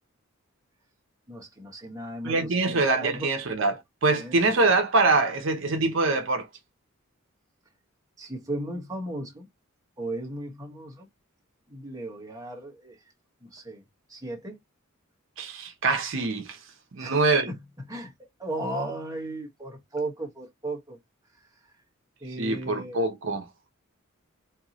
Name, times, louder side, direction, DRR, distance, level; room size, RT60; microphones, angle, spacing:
voice 1, 1.3-3.3 4.2-4.4 8.2-9.5 10.0-11.1 11.7-13.1 13.4-13.8 14.1-14.6 17.0-18.1 18.4-21.0 21.3-21.7 22.2-23.0, right 1 dB, 15° right, 1.2 m, -36 dB
voice 2, 2.2-6.5 15.4-16.6 17.0-17.5 22.4-23.4, right 3 dB, 65° right, 0.8 m, -24 dB
4.5 x 2.7 x 2.8 m
head